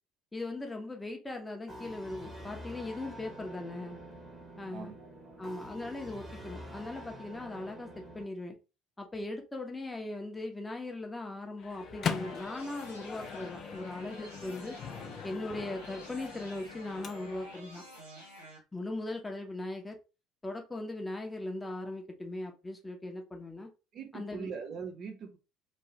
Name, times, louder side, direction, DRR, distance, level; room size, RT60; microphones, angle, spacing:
voice 1, 0.3-4.0 4.6-5.0 5.4-8.6 9.0-14.8 15.2-17.8 18.7-20.0 20.4-23.7 24.1-24.5, left 2 dB, 10° left, 3 dB, 0.9 m, -39 dB
sound 1, 1.7-8.2, equal, 15° right, 1.2 m, -47 dB
voice 2, 4.7-5.4 23.9-25.4, right 6 dB, 45° right, 5 dB, 0.7 m, -42 dB
Microwave oven, 11.6-17.6, left 6 dB, 40° left, 0.5 m, -41 dB
sound 2, 11.7-18.6, equal, 85° right, 0.9 m, -51 dB
3.1 x 2.7 x 2.8 m, 0.29 s
figure-of-eight pair, 60°, 0 cm